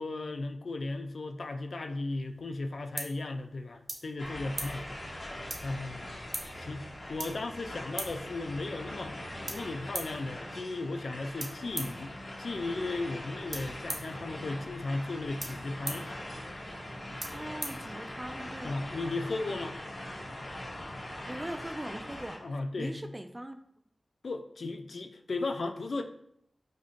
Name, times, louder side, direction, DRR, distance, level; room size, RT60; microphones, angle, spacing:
voice 1, 0.0-5.0 5.6-6.3 6.5-12.1 12.4-16.1 18.6-19.8 22.4-23.0 24.2-26.0, left 2 dB, 75° left, 5 dB, 0.3 m, -36 dB
sound 1, 2.2-18.5, right 2 dB, 80° right, 0.7 m, -44 dB
sound 2, 4.2-22.4, left 1 dB, 55° left, 1.0 m, -42 dB
voice 2, 17.3-18.8 21.3-23.6, right 1 dB, 20° right, 7 dB, 0.3 m, -41 dB
5.0 x 2.5 x 2.5 m, 0.73 s
wide cardioid pair, 65°, 0 cm